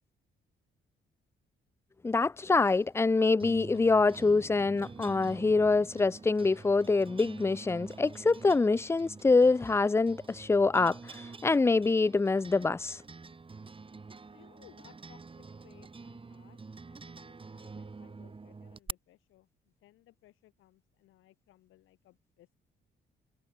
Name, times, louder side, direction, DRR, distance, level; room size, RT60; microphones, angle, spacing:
voice 1, 2.0-13.0, left 3 dB, 15° left, 0.4 m, -25 dB
sound 1, 2.4-18.9, right 4 dB, 25° right, 2.5 m, -48 dB
voice 2, 14.3-22.6, left 15 dB, 90° left, 7.7 m, -62 dB
cardioid pair, 90°, 20 cm